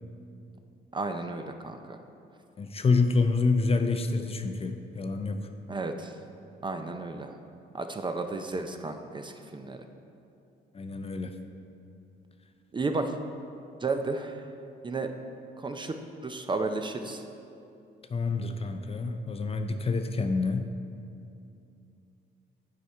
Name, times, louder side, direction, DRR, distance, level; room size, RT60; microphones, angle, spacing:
voice 1, 0.9-2.0 5.7-6.1 6.6-7.3 7.7-9.8 12.7-13.1 13.8-14.4 14.8-15.1 15.6-17.2, right 3 dB, 25° right, 6 dB, 0.4 m, -33 dB
voice 2, 2.6-5.4 10.7-11.3 18.1-20.7, left 3 dB, 30° left, 7 dB, 0.5 m, -27 dB
8.3 x 4.9 x 4.4 m, 2.6 s
cardioid pair, 90°, 20 cm